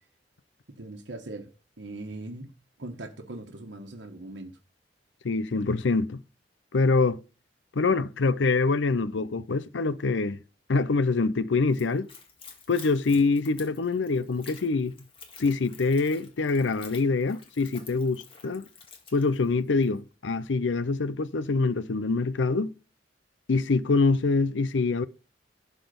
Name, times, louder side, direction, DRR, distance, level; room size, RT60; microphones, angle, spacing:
voice 1, 0.8-1.5 1.8-2.5 2.8-4.5, right 2 dB, 80° right, 1.3 m, -40 dB
voice 2, 5.2-6.2 6.7-7.2 7.8-10.4 10.7-12.1 12.7-14.9 15.4-18.6 19.1-22.8 23.5-25.1, left 3 dB, 85° left, 0.6 m, -25 dB
Splash splatter / Trickle dribble, 11.7-20.0, left 5 dB, 30° left, 1.8 m, -50 dB
12.0 x 4.1 x 5.2 m
head